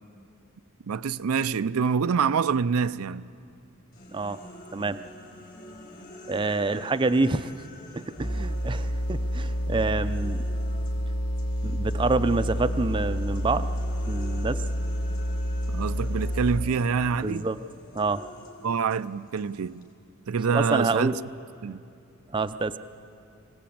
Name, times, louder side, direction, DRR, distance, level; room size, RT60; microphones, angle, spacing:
voice 1, 0.9-3.3 15.7-17.5 18.6-19.8 20.3-21.1 21.6-21.8, right 6 dB, 85° right, 0.5 m, -26 dB
sound 1, 3.9-11.0 11.4-19.9, left 1 dB, 45° left, 4.1 m, -48 dB
voice 2, 6.3-7.5 7.9-10.4 11.6-13.7 14.1-14.6 17.2-17.6 17.9-18.2 20.5-21.2 22.3-22.8, right 3 dB, 25° right, 0.5 m, -27 dB
sound 2, 8.2-16.9, equal, 70° left, 2.7 m, -29 dB
25.0 x 17.5 x 8.6 m
head